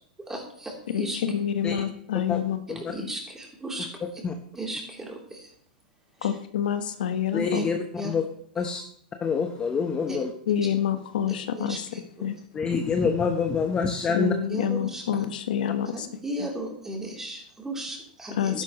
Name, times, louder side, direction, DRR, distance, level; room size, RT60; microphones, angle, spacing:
voice 1, 0.3-1.2 2.9-4.2 4.6-5.5 6.2-6.3 7.5-7.6 8.0-8.1 10.1-10.2 11.5-12.3 14.5-15.0 15.9-18.6, right 1 dB, 10° right, -1 dB, 3.3 m, -35 dB
voice 2, 0.9-2.6 3.0-3.1 6.2-7.6 10.5-11.9 12.2-12.4 14.1-16.1 16.4-16.5 18.3-18.6, left 9 dB, 75° left, 8 dB, 1.2 m, -27 dB
voice 3, 7.3-7.8 8.0-8.2 8.6-8.8 9.2-10.3 12.5-14.3, left 5 dB, 20° left, 5 dB, 1.0 m, -26 dB
12.0 x 10.5 x 3.1 m, 0.65 s
hypercardioid pair, 125°, 5 cm